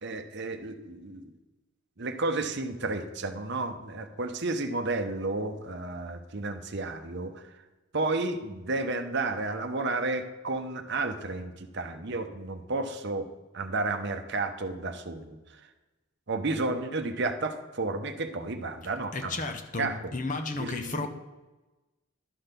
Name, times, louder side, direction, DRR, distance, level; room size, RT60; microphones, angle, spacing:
voice 1, 0.0-1.3 2.0-7.4 7.9-13.3 13.5-15.4 16.3-19.3 19.8-20.1 20.6-21.1, right 3 dB, 50° right, 7 dB, 0.8 m, -32 dB
voice 2, 18.8-21.1, left 3 dB, 35° left, 7 dB, 0.8 m, -34 dB
11.5 x 4.0 x 6.7 m, 1.1 s
head